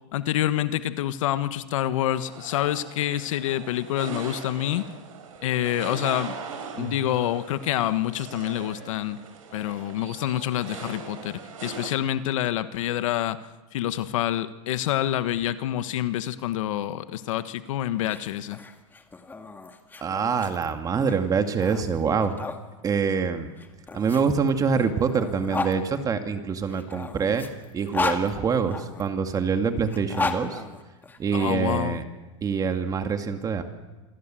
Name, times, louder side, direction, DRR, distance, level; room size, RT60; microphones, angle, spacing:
voice 1, 0.1-4.8 5.4-6.3 6.7-9.2 9.5-13.4 13.7-18.6 31.3-32.0, left 12 dB, 75° left, 12 dB, 1.4 m, -27 dB
sound 1, 2.1-11.9, right 5 dB, 85° right, 6.1 m, -40 dB
sound 2, 17.9-22.6 23.6-25.8 26.7-29.0 29.8-31.5, left 4 dB, 10° left, 1.9 m, -34 dB
voice 2, 20.0-22.4 22.8-23.5 23.9-27.5 27.7-30.6 31.2-32.0 32.4-33.6, right 6 dB, 20° right, 7 dB, 2.2 m, -25 dB
27.5 x 22.0 x 7.7 m, 1.2 s
supercardioid pair, 135°, 17 cm